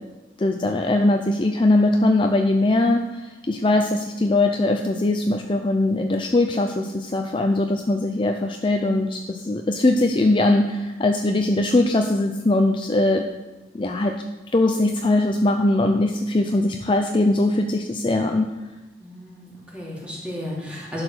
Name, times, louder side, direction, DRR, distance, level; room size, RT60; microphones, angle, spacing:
voice 1, 0.4-13.2 13.7-14.1 14.5-18.5, left 2 dB, 25° left, 4 dB, 0.5 m, -21 dB
voice 2, 19.0-21.0, left 1 dB, 5° right, -5 dB, 2.6 m, -33 dB
11.0 x 4.9 x 6.3 m, 1.1 s
head